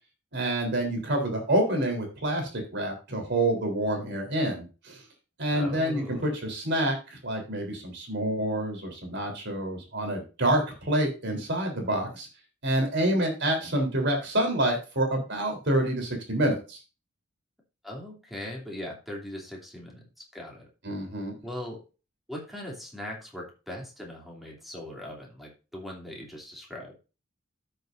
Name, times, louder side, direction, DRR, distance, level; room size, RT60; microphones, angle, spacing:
voice 1, 0.3-5.0 5.4-12.3 12.6-16.8 20.8-21.3, right 1 dB, 55° right, 3 dB, 3.6 m, -27 dB
voice 2, 5.5-6.4 17.8-20.0 20.3-20.7 21.4-21.8 22.3-27.0, left 1 dB, ahead, -2 dB, 2.8 m, -40 dB
13.0 x 6.7 x 2.6 m, 0.31 s
head